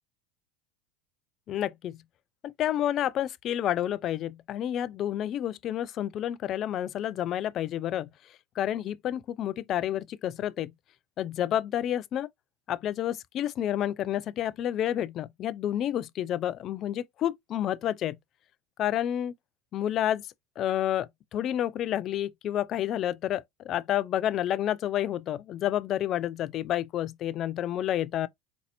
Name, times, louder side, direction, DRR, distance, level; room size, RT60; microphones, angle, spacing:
voice 1, 1.5-2.0 2.4-8.1 8.6-10.7 11.2-12.3 12.7-18.2 18.8-19.3 19.7-20.3 20.6-28.3, left 11 dB, 45° left, 0.3 m, -29 dB
4.0 x 2.6 x 2.7 m
hypercardioid pair, 95°, 0 cm